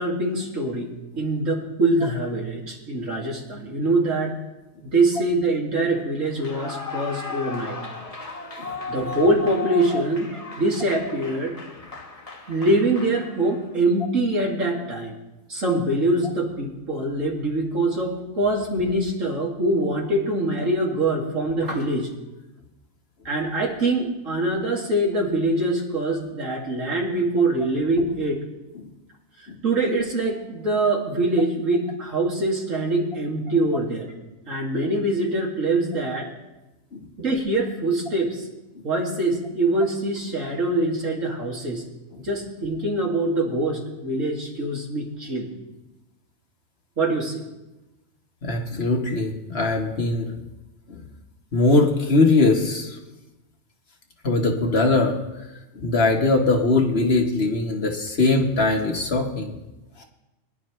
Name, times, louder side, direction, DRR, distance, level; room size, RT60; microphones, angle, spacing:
voice 1, 0.0-4.3 4.8-7.8 8.9-11.6 12.5-15.2 15.5-22.1 23.2-28.4 29.6-34.1 34.5-36.3 37.2-38.5 38.8-41.8 42.2-45.5 47.0-47.4, right 2 dB, 75° right, -1 dB, 2.6 m, -24 dB
Clapping / Cheering / Applause, 6.3-13.7, left 4 dB, 30° left, 1.3 m, -35 dB
voice 2, 48.4-50.4 50.9-51.0 51.5-53.0 54.2-55.2 55.7-59.6 60.0-60.1, left 3 dB, 50° left, 2 dB, 1.6 m, -21 dB
23.0 x 10.5 x 3.2 m, 1.0 s
omnidirectional pair, 1.4 m